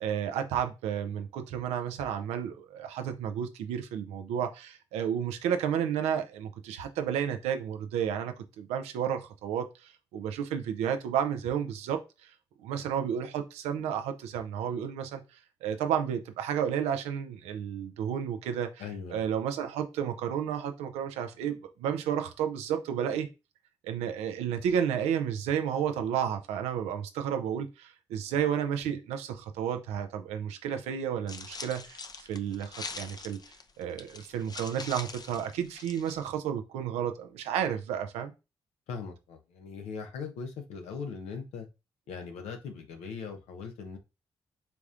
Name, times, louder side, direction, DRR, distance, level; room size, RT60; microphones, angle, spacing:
voice 1, 0.0-12.3 12.6-18.8 19.1-23.3 23.8-33.4 33.8-38.3, right 8 dB, 90° right, 0.5 m, -32 dB
voice 2, 18.8-19.2 38.9-41.7 42.1-44.0, left 5 dB, 85° left, 0.8 m, -40 dB
sound 1, 31.3-36.3, left 4 dB, 40° left, 0.6 m, -43 dB
4.6 x 3.6 x 2.5 m
supercardioid pair, 45°, 11 cm